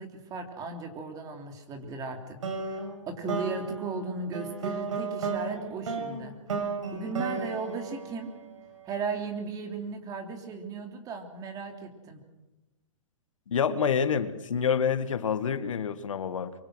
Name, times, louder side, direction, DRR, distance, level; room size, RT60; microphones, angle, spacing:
voice 1, 0.0-2.4 2.7-6.3 6.9-8.3 8.8-12.2, right 4 dB, 20° right, 5 dB, 3.2 m, -36 dB
sound 1, 2.4-8.8, right 4 dB, 75° right, 6.2 m, -34 dB
voice 2, 13.5-16.5, left 7 dB, 75° left, 11 dB, 1.7 m, -27 dB
25.0 x 23.5 x 6.3 m, 1.0 s
hypercardioid pair, 140°, 17 cm